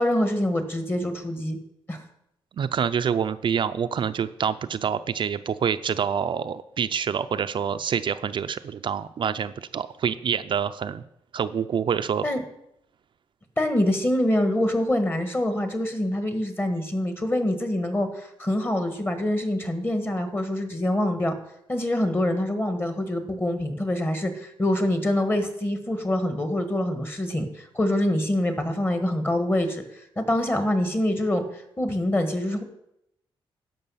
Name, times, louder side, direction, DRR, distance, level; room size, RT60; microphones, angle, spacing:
voice 1, 0.0-1.6 1.9-2.0 12.2-12.4 13.6-21.3 21.7-29.8 30.2-31.4 31.8-32.6, left 1 dB, 20° left, 7 dB, 1.5 m, -25 dB
voice 2, 2.6-11.0 11.3-12.2, right 7 dB, 55° right, 11 dB, 0.5 m, -26 dB
12.5 x 5.4 x 5.6 m, 0.80 s
cardioid pair, 90°, 10 cm